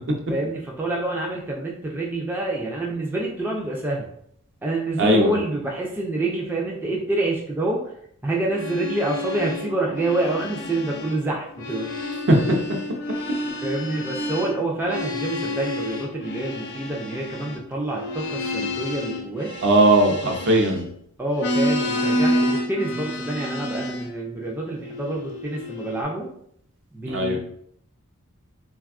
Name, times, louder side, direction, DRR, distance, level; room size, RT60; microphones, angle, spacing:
voice 1, 0.3-4.1 4.6-7.8 8.2-11.9 13.6-19.5 21.2-26.3 26.9-27.4, right 2 dB, 10° right, -2 dB, 0.3 m, -27 dB
voice 2, 5.0-5.3 12.3-12.4 19.6-20.9 27.1-27.4, right 1 dB, 60° right, 2 dB, 0.5 m, -18 dB
sound 1, 8.4-11.2 11.5-21.0 21.3-24.1 24.8-26.0, left 1 dB, 55° left, 0.5 m, -29 dB
3.3 x 2.3 x 2.3 m, 0.68 s
head